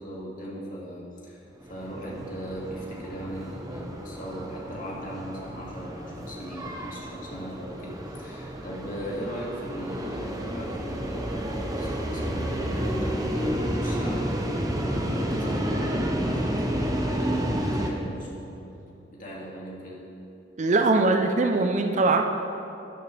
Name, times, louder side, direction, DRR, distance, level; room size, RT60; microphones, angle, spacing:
voice 1, 0.0-1.4 1.7-20.0, equal, 45° left, -5 dB, 2.2 m, -38 dB
sound 1, 1.7-17.9, equal, 20° right, 0.9 m, -30 dB
voice 2, 20.6-22.2, right 3 dB, 40° right, 4 dB, 0.5 m, -21 dB
12.0 x 9.8 x 3.4 m, 2.9 s
head